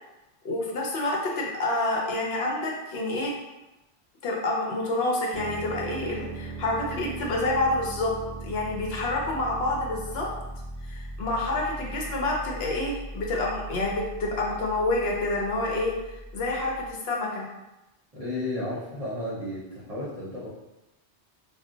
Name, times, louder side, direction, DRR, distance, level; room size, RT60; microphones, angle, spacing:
voice 1, 0.4-3.3 4.2-8.1 8.4-10.3 10.9-17.5, left 2 dB, 70° left, -2 dB, 0.8 m, -28 dB
sound 1, 5.3-16.9, right 2 dB, 25° left, 0.7 m, -39 dB
voice 2, 18.1-20.5, left 1 dB, 40° right, -7 dB, 0.7 m, -33 dB
2.3 x 2.1 x 3.7 m, 0.99 s
omnidirectional pair, 1.1 m